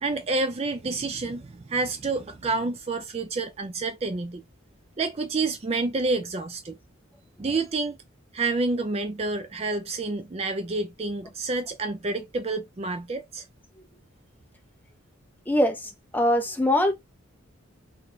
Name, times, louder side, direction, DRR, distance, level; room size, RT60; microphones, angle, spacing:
voice 1, 0.0-4.4 5.0-6.8 7.4-8.0 8.3-13.4, right 3 dB, 30° right, 0.4 m, -28 dB
voice 2, 15.5-16.9, left 1 dB, 10° left, 0.7 m, -23 dB
3.9 x 2.7 x 3.3 m
head